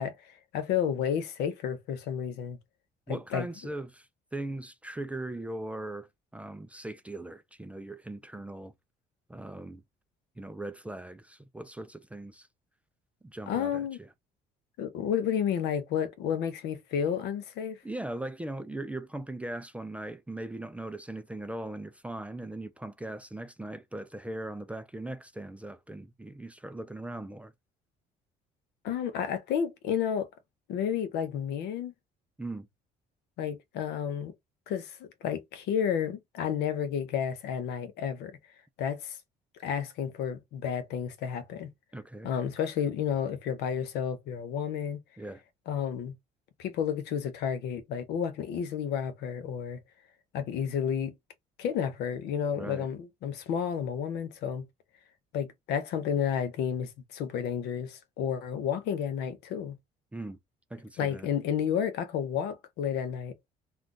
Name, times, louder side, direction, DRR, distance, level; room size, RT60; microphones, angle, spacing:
voice 1, 0.0-2.6 3.1-3.5 13.5-14.0 14.8-17.8 28.8-30.3 30.7-31.9 33.4-34.3 34.7-38.3 38.8-39.2 39.6-41.7 42.2-45.0 45.7-46.1 46.6-49.8 50.3-51.1 51.6-54.6 55.3-59.8 61.0-63.3, left 8 dB, 80° left, 0.6 m, -31 dB
voice 2, 3.1-8.7 9.3-9.8 10.4-12.5 13.2-14.1 17.8-27.5 32.4-32.7 41.9-42.3 45.2-45.4 52.5-52.9 60.1-60.4 60.7-61.3, right 1 dB, 10° right, 0.3 m, -39 dB
2.4 x 2.3 x 3.7 m
cardioid pair, 110°, 17 cm